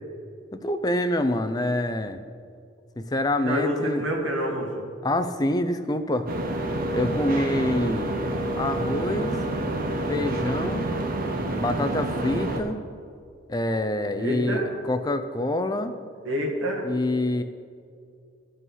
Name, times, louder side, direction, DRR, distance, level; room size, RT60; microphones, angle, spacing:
voice 1, 0.5-2.2 3.0-4.0 5.0-6.3 6.9-8.2 8.6-9.4 10.1-10.9 11.6-12.8 13.5-15.9 16.8-17.4, left 1 dB, 20° left, 9 dB, 0.4 m, -26 dB
voice 2, 3.4-4.8 14.2-14.7 16.2-16.9, equal, 80° right, -1 dB, 2.0 m, -27 dB
sound 1, 6.3-12.6, right 2 dB, 45° right, 0.8 m, -28 dB
14.5 x 5.5 x 5.6 m, 2.3 s
head